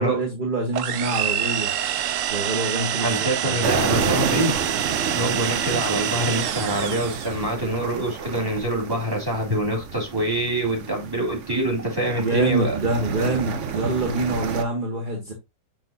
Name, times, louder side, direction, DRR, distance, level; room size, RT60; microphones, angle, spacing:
voice 1, 0.0-1.7 2.3-3.9 12.2-15.3, right 2 dB, 30° right, 1.1 m, -26 dB
sound 1, 0.7-7.4, right 10 dB, 85° right, 0.6 m, -26 dB
voice 2, 3.0-4.5 5.1-12.8, right 1 dB, 10° right, 2.6 m, -25 dB
sound 2, 3.6-14.6, right 6 dB, 55° right, 0.9 m, -30 dB
7.0 x 5.9 x 2.7 m
omnidirectional pair, 2.0 m